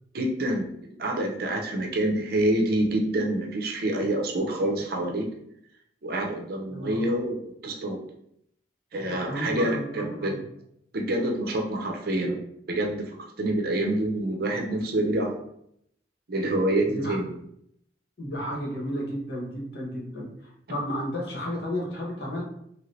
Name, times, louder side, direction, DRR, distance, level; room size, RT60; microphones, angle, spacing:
voice 1, 0.1-0.7 1.0-5.3 6.0-8.0 8.9-10.3 10.9-12.4 12.7-15.3 16.3-17.3, right 1 dB, 55° right, 1 dB, 0.6 m, -27 dB
voice 2, 6.7-7.1 9.3-10.4 16.9-17.1 18.2-20.3 20.7-22.4, equal, 60° left, -3 dB, 1.0 m, -32 dB
2.9 x 2.6 x 3.1 m, 0.73 s
head